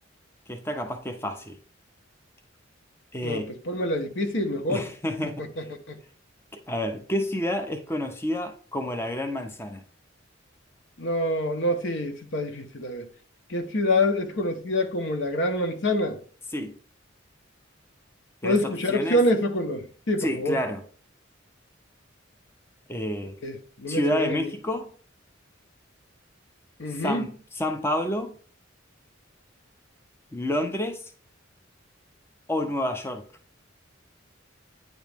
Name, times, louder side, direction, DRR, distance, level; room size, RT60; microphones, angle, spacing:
voice 1, 0.5-1.6 3.1-3.5 4.7-5.4 6.7-9.8 16.5-16.8 18.4-19.2 20.2-20.8 22.9-23.3 23.9-24.9 26.9-28.3 30.3-31.1 32.5-33.2, left 1 dB, 10° left, 0.6 m, -29 dB
voice 2, 3.2-4.8 5.6-6.0 11.0-13.0 13.5-16.2 18.4-20.6 23.4-24.5 26.8-27.3, left 1 dB, 65° left, 0.9 m, -26 dB
9.2 x 3.1 x 3.4 m
head